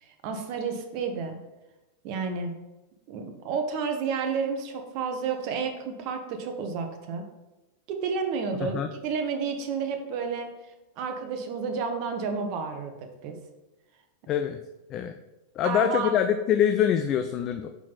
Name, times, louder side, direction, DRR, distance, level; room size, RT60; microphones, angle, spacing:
voice 1, 0.0-1.4 2.0-2.5 3.1-7.2 7.9-10.5 11.0-13.4 15.6-16.1, right 5 dB, 45° right, 5 dB, 0.8 m, -31 dB
voice 2, 14.3-14.6 14.9-15.1 15.6-17.7, left 9 dB, 35° left, 7 dB, 0.3 m, -24 dB
5.7 x 4.2 x 4.1 m, 1.0 s
figure-of-eight pair, 90°, 0 cm